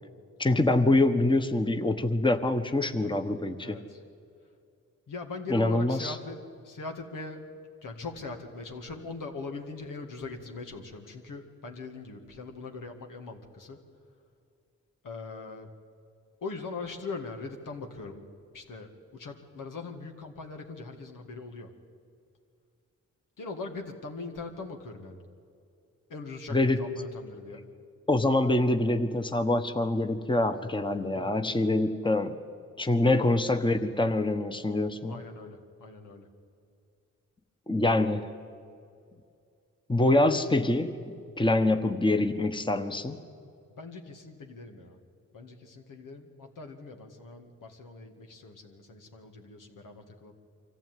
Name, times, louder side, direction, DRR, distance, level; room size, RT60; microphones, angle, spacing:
voice 1, 0.4-3.8 5.5-6.1 26.5-26.8 28.1-32.4 32.8-35.2 37.7-38.3 39.9-43.2, left 2 dB, 15° left, 7 dB, 1.2 m, -25 dB
voice 2, 3.6-4.0 5.1-7.4 7.8-13.8 15.0-15.7 16.4-18.2 18.5-21.7 23.4-25.2 26.1-27.6 31.1-31.6 33.0-33.3 35.1-36.3 43.7-45.0 45.3-50.3, left 3 dB, 85° left, 3 dB, 2.2 m, -41 dB
24.0 x 14.5 x 9.3 m, 2.4 s
cardioid pair, 60°, 31 cm